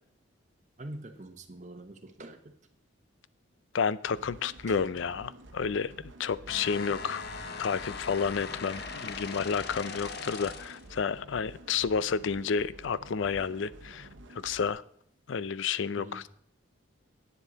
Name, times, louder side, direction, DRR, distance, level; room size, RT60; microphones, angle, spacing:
voice 1, 0.8-2.6 4.7-4.9 15.9-16.2, right 1 dB, 35° right, 1.1 m, -45 dB
voice 2, 3.7-7.2 7.6-14.8 15.3-16.3, left 6 dB, 70° left, 0.5 m, -31 dB
sound 1, 4.1-14.7, right 1 dB, 65° right, 1.0 m, -50 dB
sound 2, 6.5-10.9, left 4 dB, 55° left, 0.8 m, -40 dB
11.0 x 9.4 x 4.0 m
head